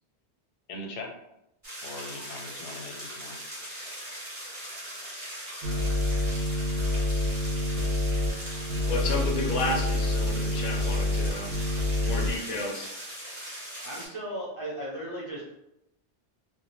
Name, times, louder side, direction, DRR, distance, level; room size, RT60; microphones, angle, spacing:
voice 1, 0.7-1.1 1.8-3.4, left 2 dB, 90° left, 2 dB, 0.9 m, -40 dB
sound 1, 1.6-14.1, equal, 25° right, 0.8 m, -40 dB
sound 2, 5.6-12.4, left 2 dB, 70° right, 0.8 m, -27 dB
voice 2, 8.8-11.5 12.0-12.9, left 2 dB, 50° left, 0 dB, 0.4 m, -32 dB
voice 3, 13.8-15.5, right 1 dB, 40° right, -6 dB, 0.4 m, -36 dB
2.3 x 2.1 x 2.9 m, 0.84 s
omnidirectional pair, 1.2 m